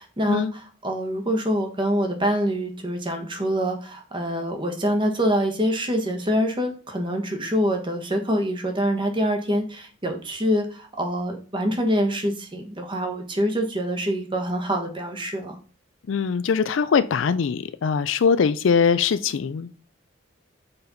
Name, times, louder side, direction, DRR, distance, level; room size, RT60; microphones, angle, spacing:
voice 1, 0.0-15.6, equal, 25° right, 4 dB, 1.1 m, -25 dB
voice 2, 16.1-19.8, left 6 dB, 65° left, 14 dB, 0.4 m, -22 dB
6.7 x 4.2 x 4.0 m, 0.38 s
head